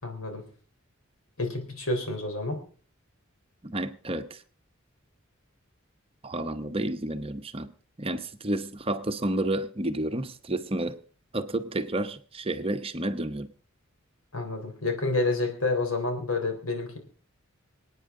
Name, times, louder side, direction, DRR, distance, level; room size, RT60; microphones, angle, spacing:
voice 1, 0.0-0.5 1.4-2.6 14.3-17.0, left 2 dB, 85° left, 3.6 m, -29 dB
voice 2, 3.6-4.4 6.2-7.7 8.0-11.0 11.3-13.5, right 1 dB, 25° right, 0.8 m, -30 dB
25.5 x 9.2 x 3.7 m
head